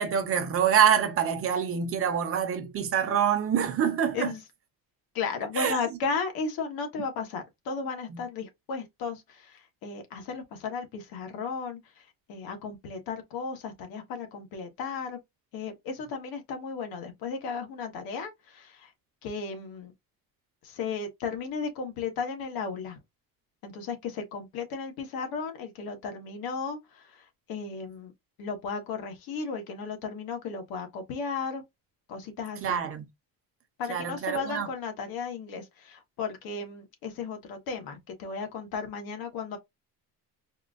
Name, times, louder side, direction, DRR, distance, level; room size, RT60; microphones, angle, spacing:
voice 1, 0.0-4.3 5.5-5.8 8.1-8.2 32.6-33.0 33.9-34.7, right 8 dB, 40° right, 0.8 m, -26 dB
voice 2, 5.1-9.2 9.8-11.8 12.3-15.2 15.5-18.9 19.2-19.9 20.6-23.0 23.6-26.8 27.5-28.1 28.4-31.6 32.1-32.8 33.8-39.6, left 5 dB, 80° left, 1.3 m, -35 dB
4.4 x 2.4 x 2.5 m
cardioid pair, 165°, 36 cm